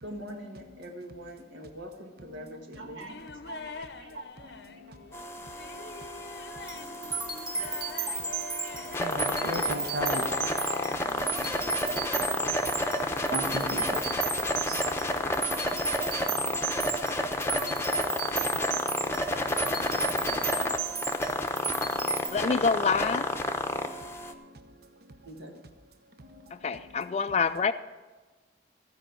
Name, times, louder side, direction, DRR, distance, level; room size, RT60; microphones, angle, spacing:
voice 1, 0.0-3.1 3.4-4.3 7.5-9.5 12.0-12.6 25.2-25.5, right 1 dB, 75° right, 1.5 m, -44 dB
sound 1, 3.1-13.0 13.3-14.0, left 5 dB, 60° left, 0.7 m, -44 dB
voice 2, 4.7-7.4 8.7-10.6 10.9-12.0 13.1-17.0 17.5-19.1 19.6-21.1 21.8-22.4 23.5-25.2 26.2-27.2, right 1 dB, 55° right, 0.9 m, -42 dB
sound 2, 5.1-24.3, left 1 dB, 15° left, 0.7 m, -31 dB
sound 3, 6.6-22.3, right 4 dB, 25° right, 1.5 m, -34 dB
voice 3, 22.3-23.3 26.5-27.7, left 5 dB, 35° left, 0.3 m, -26 dB
15.0 x 5.4 x 8.9 m
head